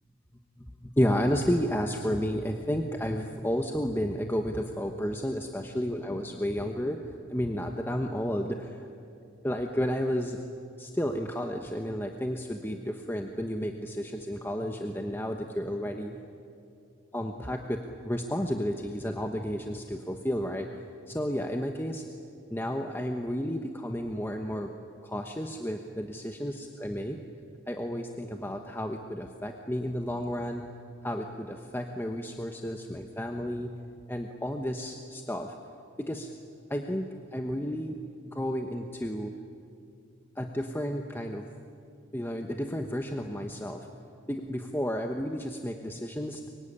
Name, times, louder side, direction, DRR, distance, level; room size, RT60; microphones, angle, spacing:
voice 1, 0.8-7.0 7.3-8.8 9.4-10.4 10.8-16.2 17.1-20.7 21.1-22.0 22.5-24.7 25.0-27.2 27.7-30.7 31.0-33.8 34.1-35.5 36.1-36.3 36.7-37.0 37.3-38.0 38.3-39.3 40.4-41.4 42.1-43.8 44.3-46.5, equal, 10° left, 4 dB, 1.1 m, -32 dB
24.0 x 24.0 x 10.0 m, 2.6 s
head